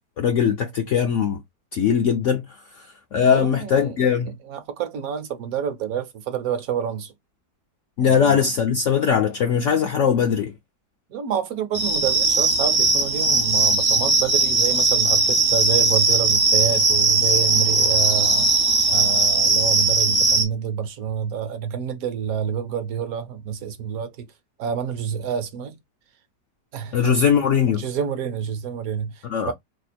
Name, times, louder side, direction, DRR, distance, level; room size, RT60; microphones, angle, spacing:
voice 1, 0.2-1.4 1.7-2.5 2.8-4.3 8.0-10.5 26.9-27.8 29.2-29.5, left 7 dB, 70° left, 0.7 m, -20 dB
voice 2, 3.2-3.9 4.5-7.1 8.0-8.4 11.1-18.5 18.9-24.3 24.6-25.8 26.7-27.3 27.8-29.5, right 8 dB, 65° right, 1.0 m, -28 dB
sound 1, 11.7-20.4, right 3 dB, 35° right, 0.3 m, -19 dB
3.0 x 2.4 x 4.1 m
omnidirectional pair, 1.8 m